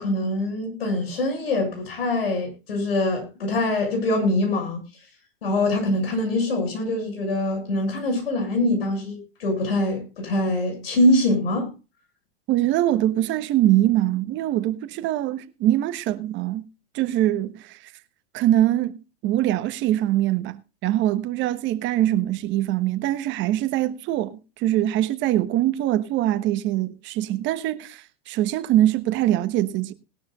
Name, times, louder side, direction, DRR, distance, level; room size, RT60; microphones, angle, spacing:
voice 1, 0.0-4.8 5.4-11.7, left 1 dB, 80° left, 6.9 m, -24 dB
voice 2, 12.5-16.6 16.9-17.9 18.3-18.9 19.2-29.9, right 13 dB, 40° right, 1.3 m, -23 dB
19.5 x 12.0 x 2.4 m
hypercardioid pair, 105°, 29 cm